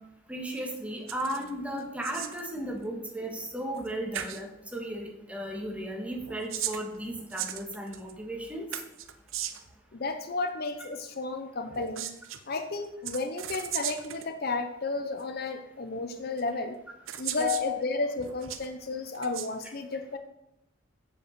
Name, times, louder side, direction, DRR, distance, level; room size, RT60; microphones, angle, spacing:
voice 1, 0.3-8.7 17.4-17.8, equal, 5° right, 0 dB, 1.8 m, -35 dB
sound 1, 1.1-1.5 1.8-2.5 3.7-3.9 4.1-4.4 6.2-8.1 8.7-9.7 11.7-12.4 13.0-14.3 15.2-15.3 16.4-16.5 17.1-17.7 18.2-18.7 19.1-19.5, right 11 dB, 85° right, 0.8 m, -37 dB
voice 2, 9.9-12.1 12.5-16.8 17.2-20.2, left 3 dB, 50° left, 8 dB, 0.7 m, -33 dB
7.7 x 7.3 x 6.7 m, 0.85 s
head